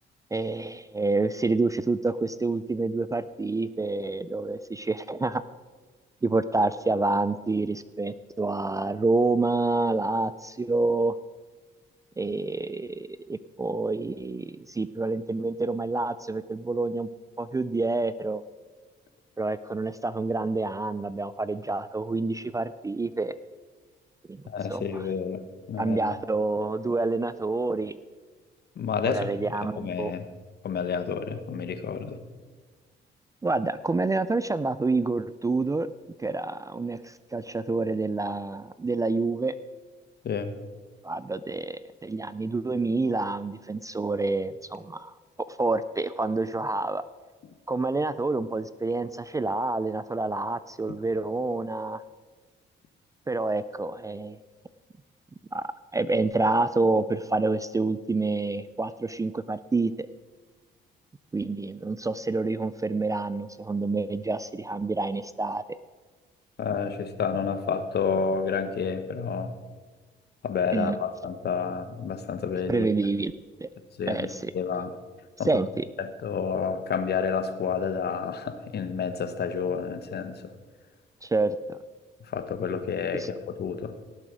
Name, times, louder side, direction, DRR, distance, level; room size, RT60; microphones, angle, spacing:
voice 1, 0.3-5.4 6.2-11.1 12.2-17.1 17.4-18.4 19.4-23.3 24.3-24.4 24.7-25.1 25.8-28.0 29.0-30.1 33.4-35.9 36.2-39.5 41.0-45.1 45.5-47.0 47.7-52.0 53.3-54.4 55.5-60.1 61.3-65.8 70.7-71.0 72.7-73.3 73.6-73.7 74.1-74.5 75.5-75.8 81.2-81.8 83.1-83.3, right 3 dB, 15° right, 15 dB, 0.4 m, -28 dB
voice 2, 24.5-25.4 25.7-26.0 28.8-29.3 29.8-30.2 30.6-32.2 40.2-40.5 66.6-69.5 70.4-72.9 74.0-74.3 74.5-74.9 75.4-75.5 76.0-80.4 82.3-83.9, left 6 dB, 55° left, 10 dB, 1.1 m, -29 dB
18.0 x 7.6 x 5.0 m, 1.4 s
cardioid pair, 90°, 20 cm